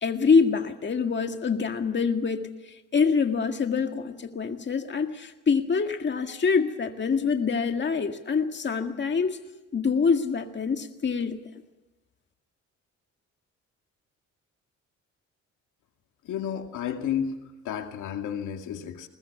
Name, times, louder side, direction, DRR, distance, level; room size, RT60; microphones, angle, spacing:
voice 1, 0.0-9.4 9.7-11.4, left 5 dB, 35° left, 6 dB, 1.9 m, -25 dB
voice 2, 16.2-17.4 17.6-19.1, left 8 dB, 85° left, 5 dB, 2.3 m, -31 dB
21.0 x 20.0 x 7.1 m, 1.1 s
cardioid pair, 90°, 30 cm